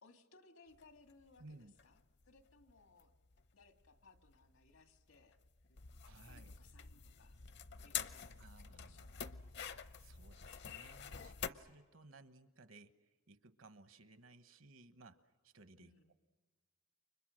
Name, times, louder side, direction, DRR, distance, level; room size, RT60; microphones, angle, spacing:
voice 1, 0.0-2.0 2.3-3.1 3.5-5.4 6.0-7.4 7.8-9.3 15.8-16.1, left 3 dB, 85° left, 6 dB, 2.2 m, -65 dB
sound 1, 0.7-11.5, left 8 dB, 55° left, 0.8 m, -48 dB
voice 2, 1.4-1.7 6.0-6.6 8.4-9.2 10.0-15.9, right 3 dB, 70° right, 11 dB, 1.2 m, -60 dB
29.5 x 25.0 x 6.4 m, 1.4 s
head